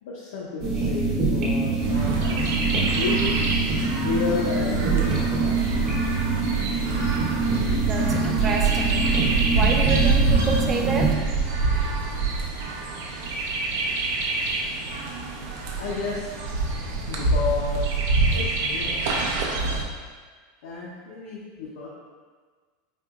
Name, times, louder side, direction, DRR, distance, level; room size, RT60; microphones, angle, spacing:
voice 1, 0.0-2.5 2.9-3.4 4.0-5.5 15.8-16.5 17.1-18.0 18.3-19.0 20.6-21.9, left 4 dB, 85° left, -5 dB, 0.6 m, -31 dB
sound 1, 0.6-11.1, right 3 dB, 45° right, 0.9 m, -24 dB
Chirp tweet, 1.8-19.8, right 3 dB, 75° right, 0.5 m, -26 dB
voice 2, 7.8-9.1 9.5-11.2, right 3 dB, 20° right, 2 dB, 0.4 m, -28 dB
4.2 x 2.9 x 2.4 m, 1.5 s
supercardioid pair, 160°, 0 cm